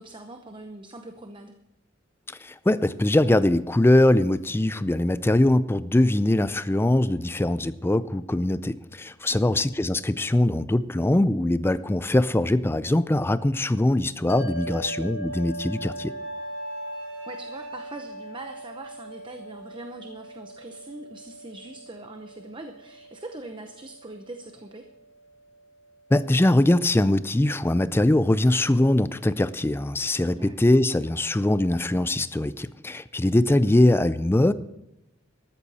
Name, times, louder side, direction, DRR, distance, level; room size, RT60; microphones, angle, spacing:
voice 1, 0.0-1.5 9.3-9.6 17.2-24.9 30.2-30.5, right 2 dB, 25° right, 6 dB, 0.8 m, -42 dB
voice 2, 2.4-16.1 26.1-34.5, left 1 dB, 10° left, 15 dB, 0.4 m, -22 dB
sound 1, 14.3-26.8, right 2 dB, 60° left, 1.9 m, -41 dB
Wind instrument woodwind instrument, 15.3-19.6, left 1 dB, 60° right, 4.0 m, -43 dB
13.5 x 13.5 x 4.2 m, 0.87 s
head